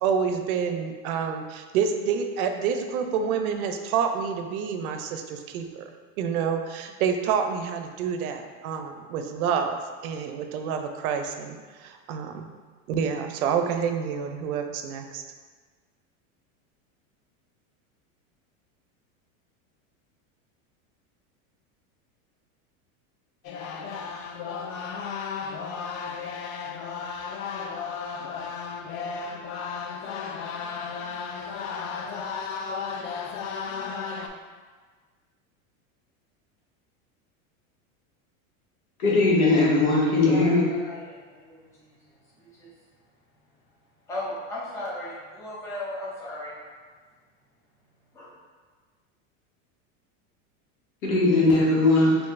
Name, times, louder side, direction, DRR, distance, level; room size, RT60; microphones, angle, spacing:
voice 1, 0.0-5.8 6.2-12.5 12.9-15.2, right 6 dB, 85° right, 6 dB, 0.5 m, -28 dB
sound 1, 23.4-34.3, left 5 dB, 70° left, 0.5 m, -34 dB
voice 2, 39.0-40.7 51.0-52.2, left 2 dB, 90° left, -5 dB, 1.3 m, -19 dB
voice 3, 40.3-41.0 41.3-41.9 42.6-42.7 44.1-46.5 48.1-48.3, left 1 dB, 10° left, -7 dB, 0.3 m, -36 dB
4.5 x 2.6 x 2.4 m, 1.5 s
supercardioid pair, 150°, 42 cm